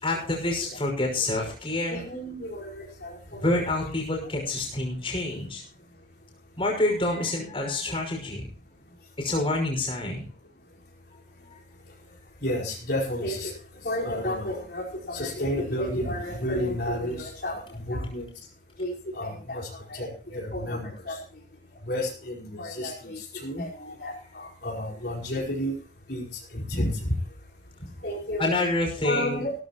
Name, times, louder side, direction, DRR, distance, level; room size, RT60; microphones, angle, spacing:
voice 1, 0.0-2.0 3.3-5.6 6.6-8.5 9.2-10.3 28.4-29.4, left 2 dB, 30° left, 1 dB, 5.7 m, -27 dB
voice 2, 1.9-3.8 12.4-13.5 13.8-18.3 18.8-21.2 21.8-25.8 26.1-26.2 26.5-27.1 28.0-28.4 29.0-29.5, left 1 dB, 60° left, -3 dB, 4.9 m, -31 dB
17.0 x 14.5 x 3.0 m, 0.39 s
head